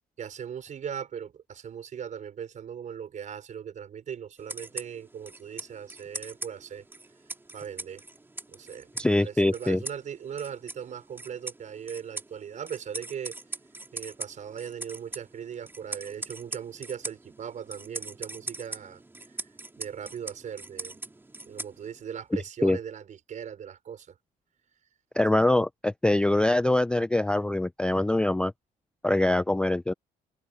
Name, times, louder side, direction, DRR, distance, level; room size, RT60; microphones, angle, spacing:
voice 1, 0.2-6.8 7.5-8.0 8.5-8.9 9.2-13.3 13.9-19.0 19.4-19.5 19.8-21.0 21.4-24.2, right 8 dB, 45° right, 5.2 m, -39 dB
sound 1, 4.4-22.2, right 2 dB, 15° right, 3.0 m, -42 dB
voice 2, 9.0-9.8 22.6-22.8 25.2-28.5 29.0-29.9, left 2 dB, 5° left, 0.4 m, -23 dB
cardioid pair, 110°, 17 cm